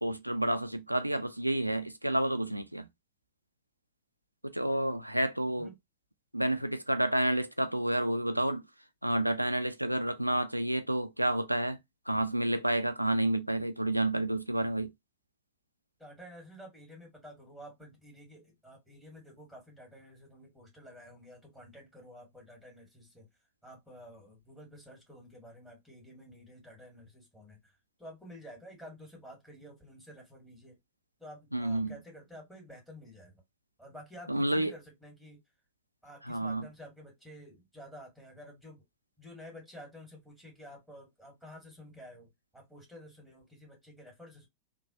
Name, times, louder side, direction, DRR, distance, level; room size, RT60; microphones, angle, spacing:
voice 1, 0.0-2.9 4.4-5.7 6.3-8.6 9.0-11.8 12.1-14.9 31.5-31.9 34.3-34.7 36.2-36.7, right 1 dB, 90° right, 0.3 m, -30 dB
voice 2, 16.0-23.3 23.6-30.8 31.2-33.4 33.8-35.4 36.0-38.8 39.2-44.5, equal, 5° left, 1.6 m, -51 dB
3.1 x 2.2 x 2.7 m
figure-of-eight pair, 90°, 0 cm